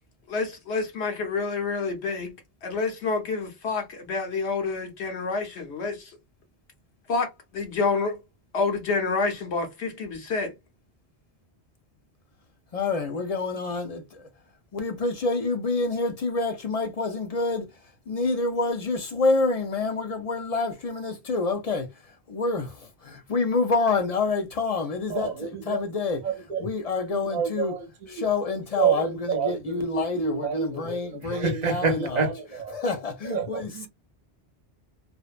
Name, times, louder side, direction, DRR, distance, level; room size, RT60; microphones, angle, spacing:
voice 1, 0.3-2.3 2.6-6.1 7.1-8.2 8.5-10.5, left 4 dB, 80° left, 1.1 m, -28 dB
voice 2, 12.7-14.3 14.7-26.2 26.6-27.7 28.1-32.3 32.7-33.9, left 3 dB, 55° left, 0.4 m, -28 dB
voice 3, 25.1-25.8 26.2-26.7 27.1-28.2 28.8-31.0 31.2-32.8 33.3-33.5 33.7-33.9, right 5 dB, 45° right, 0.7 m, -28 dB
2.7 x 2.1 x 2.4 m
omnidirectional pair, 1.1 m